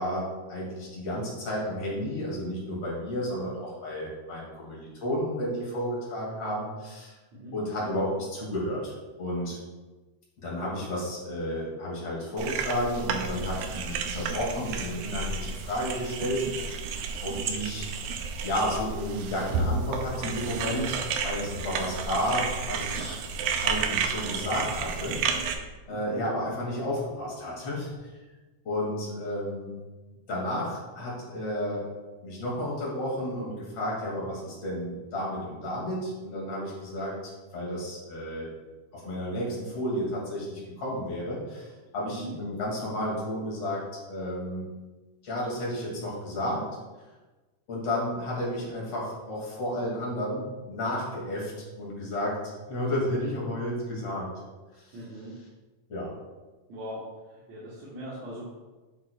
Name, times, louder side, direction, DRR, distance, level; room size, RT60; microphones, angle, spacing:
voice 1, 0.0-7.1 7.5-8.9 9.2-9.6 10.4-16.8 17.2-17.9 18.4-23.2 23.6-25.2 25.9-28.1 28.6-29.8 30.3-31.9 32.2-37.2 37.5-38.5 38.9-44.6 45.2-46.6 47.7-51.5 51.8-54.3 54.7-55.0 55.9-56.1, equal, 50° left, -5 dB, 3.3 m, -32 dB
sound 1, 12.4-25.5, right 5 dB, 85° right, 2.1 m, -31 dB
voice 2, 25.9-26.2 42.0-42.3 54.9-55.3 56.7-57.0 57.3-58.5, equal, 65° right, -7 dB, 2.5 m, -40 dB
8.6 x 7.6 x 2.4 m, 1.2 s
omnidirectional pair, 3.5 m